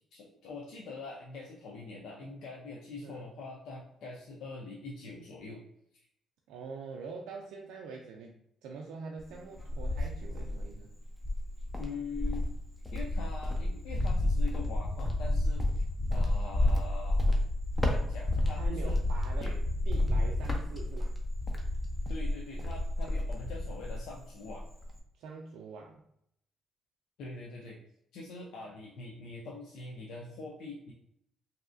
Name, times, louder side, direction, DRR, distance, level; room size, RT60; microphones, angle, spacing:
voice 1, 0.1-5.6 11.8-12.5 12.9-15.8 16.1-17.2 17.9-19.0 19.4-19.6 22.1-24.6 27.2-27.8 28.1-30.9, left 3 dB, 85° left, -3 dB, 0.5 m, -43 dB
voice 2, 6.5-10.9 18.5-19.6 19.9-21.1 25.2-26.0, right 4 dB, 90° right, 0 dB, 0.3 m, -44 dB
Cricket, 9.2-10.7 11.2-24.1 24.4-25.0, left 1 dB, 15° left, 0.6 m, -30 dB
3.1 x 2.7 x 2.5 m, 0.73 s
cardioid pair, 90°, 0 cm